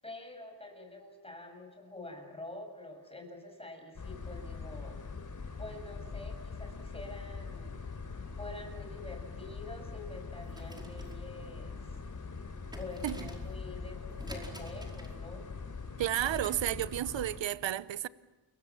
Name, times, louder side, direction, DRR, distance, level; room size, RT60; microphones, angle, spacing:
voice 1, 0.0-5.0 5.6-7.8 8.3-12.0 12.7-15.4, left 2 dB, 10° left, 7.1 m, -46 dB
sound 1, 4.0-17.4, left 4 dB, 40° left, 3.5 m, -42 dB
sound 2, 10.4-16.7, equal, 10° right, 4.9 m, -50 dB
voice 2, 16.0-18.1, right 13 dB, 75° right, 0.9 m, -32 dB
29.0 x 23.0 x 7.4 m
wide cardioid pair, 110°, 45 cm